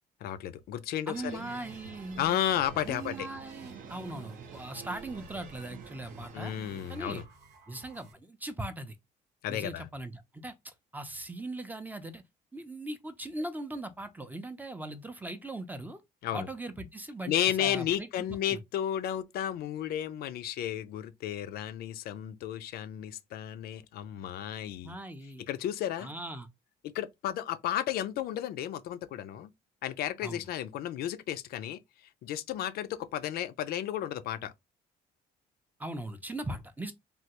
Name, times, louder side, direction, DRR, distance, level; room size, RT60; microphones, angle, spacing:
voice 1, 0.2-1.4 2.2-3.3 6.3-7.2 9.4-9.9 16.2-16.5 17.3-25.0 25.5-26.1 26.9-29.5 29.8-31.8 32.2-34.5, left 11 dB, 65° left, 0.4 m, -33 dB
voice 2, 1.1-2.2 2.8-6.6 6.9-7.2 7.7-9.0 9.5-12.2 12.5-16.0 16.3-17.3 17.6-18.6 24.8-25.4 26.0-26.5 30.2-30.5 35.8-36.9, right 1 dB, 10° right, 0.4 m, -39 dB
sound 1, 1.1-7.3, right 6 dB, 55° right, 0.7 m, -47 dB
sound 2, 1.3-8.1, right 3 dB, 90° right, 0.9 m, -59 dB
3.3 x 2.3 x 2.8 m
cardioid pair, 110°, 17 cm